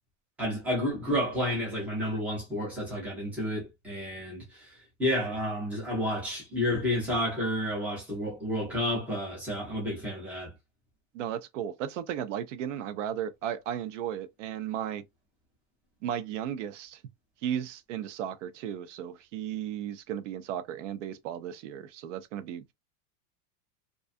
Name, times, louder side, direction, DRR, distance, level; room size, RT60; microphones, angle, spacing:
voice 1, 0.4-4.6 5.0-10.5, equal, 5° right, 0.4 m, -30 dB
voice 2, 11.1-15.0 16.0-17.0 17.4-22.6, right 10 dB, 60° right, 0.5 m, -35 dB
2.5 x 2.2 x 2.5 m
supercardioid pair, 175°, 43 cm